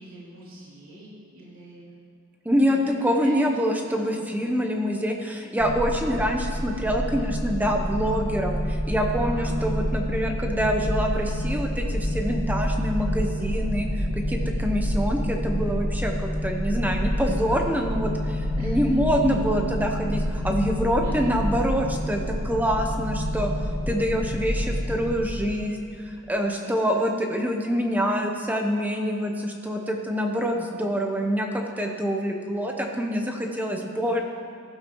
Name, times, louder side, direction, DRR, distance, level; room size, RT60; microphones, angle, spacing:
voice 1, 0.0-1.9 2.5-3.4 4.0-4.2 9.2-9.6 18.6-18.8 21.0-21.3 26.4-27.2, right 1 dB, 75° right, -8 dB, 3.1 m, -43 dB
voice 2, 2.4-23.5 23.9-34.2, equal, 10° right, 2 dB, 0.7 m, -26 dB
sound 1, 5.6-25.2, equal, 80° left, 1.7 m, -28 dB
15.5 x 11.5 x 3.0 m, 2.5 s
head